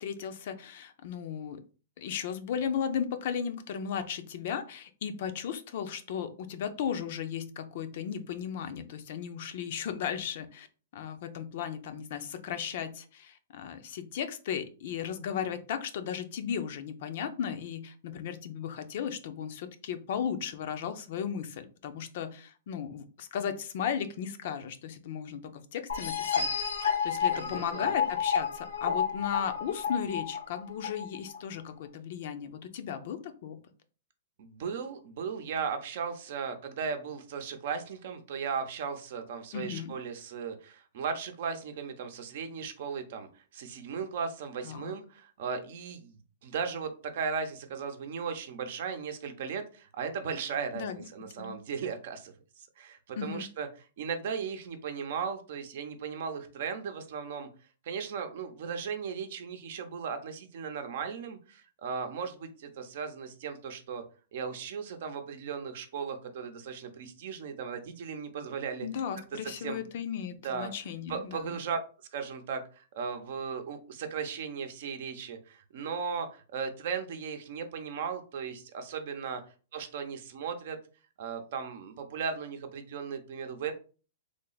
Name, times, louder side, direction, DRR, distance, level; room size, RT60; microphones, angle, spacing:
voice 1, 0.0-1.6 2.0-10.7 10.9-26.5 27.0-33.6 39.5-39.9 44.6-44.9 50.7-51.0 51.4-51.5 53.2-53.4 68.8-71.6, left 8 dB, 60° left, 8 dB, 0.5 m, -36 dB
sound 1, 25.9-31.4, left 7 dB, 90° left, 0.8 m, -30 dB
voice 2, 27.3-28.0 34.4-50.9 51.1-53.7 54.0-57.5 57.8-64.0 64.3-68.9 69.4-69.8 70.4-70.7 71.1-71.8 72.1-79.4 79.7-80.8 81.2-83.7, right 6 dB, 60° right, 7 dB, 0.6 m, -36 dB
3.3 x 2.0 x 3.9 m, 0.36 s
hypercardioid pair, 130°, 0 cm